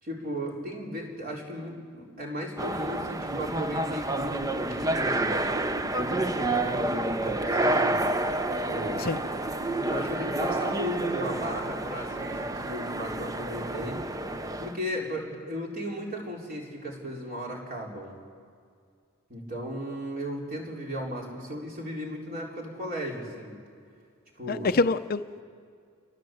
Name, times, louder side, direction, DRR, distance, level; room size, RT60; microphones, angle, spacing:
voice 1, 0.0-5.3 6.6-8.0 8.7-9.1 9.8-14.0 14.6-18.1 19.3-23.6 24.4-24.7, equal, 45° right, 4.4 m, -36 dB
sound 1, 2.6-14.8, right 2 dB, 15° right, 0.6 m, -29 dB
voice 2, 24.5-25.4, left 3 dB, 45° left, 0.6 m, -26 dB
27.0 x 19.5 x 7.8 m
head